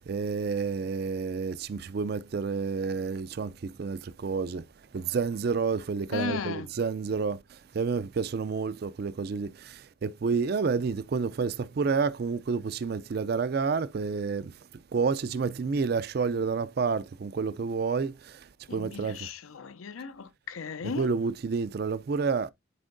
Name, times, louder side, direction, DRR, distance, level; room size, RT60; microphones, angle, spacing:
voice 1, 0.1-4.6 4.9-14.5 14.9-19.3 21.0-22.5, right 5 dB, 50° right, 0.4 m, -29 dB
voice 2, 6.1-6.7 18.7-21.1, left 5 dB, 85° left, 0.6 m, -36 dB
9.8 x 4.4 x 2.5 m
head